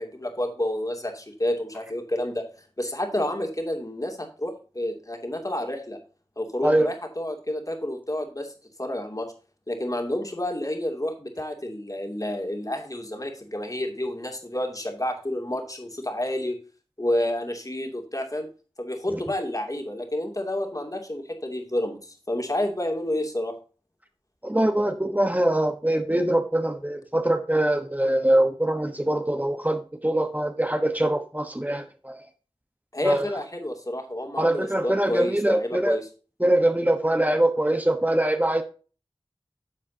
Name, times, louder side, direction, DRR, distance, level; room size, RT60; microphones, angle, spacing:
voice 1, 0.0-2.4 2.8-6.0 6.4-8.5 8.8-9.3 9.7-16.6 17.0-18.5 18.8-23.5 32.9-36.1, left 1 dB, 35° left, 3 dB, 2.6 m, -29 dB
voice 2, 24.4-32.2 33.0-33.3 34.4-36.0 36.4-38.6, right 1 dB, 15° right, 6 dB, 1.1 m, -23 dB
11.0 x 7.5 x 2.8 m, 0.35 s
wide cardioid pair, 50°, 10 cm